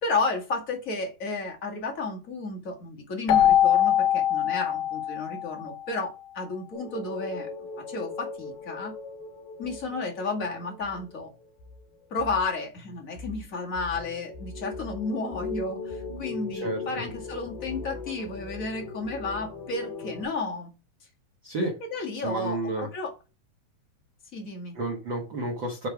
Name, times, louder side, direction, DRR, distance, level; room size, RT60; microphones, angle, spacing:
voice 1, 0.0-7.5 7.9-8.9 9.6-11.3 12.1-20.7 21.8-23.1 24.3-24.8, left 3 dB, 35° left, 1.5 m, -32 dB
Keyboard (musical), 3.3-5.9, left 11 dB, 80° left, 2.3 m, -22 dB
sound 1, 6.7-12.5 12.8-20.2, left 4 dB, 60° left, 3.6 m, -39 dB
voice 2, 16.5-16.8 21.4-21.8 22.2-22.9 24.7-25.9, right 2 dB, 85° right, 1.0 m, -30 dB
8.6 x 4.0 x 4.7 m
omnidirectional pair, 4.5 m